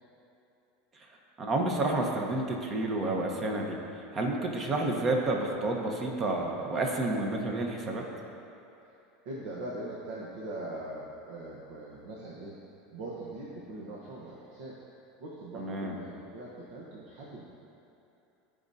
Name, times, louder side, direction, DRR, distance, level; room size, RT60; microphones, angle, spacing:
voice 1, 1.4-3.8 4.1-8.0 15.5-15.9, right 2 dB, 30° right, 1 dB, 1.1 m, -30 dB
voice 2, 9.2-12.6 12.9-14.8 15.2-17.4, right 1 dB, 70° right, -5 dB, 1.2 m, -41 dB
14.5 x 5.1 x 2.8 m, 2.9 s
supercardioid pair, 125°, 0 cm